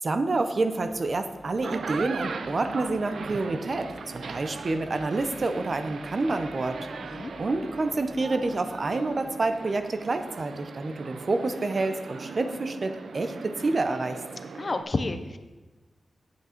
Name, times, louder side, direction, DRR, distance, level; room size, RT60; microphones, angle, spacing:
voice 1, 0.0-6.8 7.4-14.2, right 3 dB, 40° right, 9 dB, 0.6 m, -28 dB
sound 1, 0.7-12.5, equal, 5° right, 0.8 m, -47 dB
sound 2, 1.5-14.8, right 5 dB, 90° right, 0.5 m, -39 dB
voice 2, 14.5-15.4, left 3 dB, 35° left, 9 dB, 0.6 m, -30 dB
8.7 x 8.1 x 4.4 m, 1.2 s
wide cardioid pair, 165°, 0 cm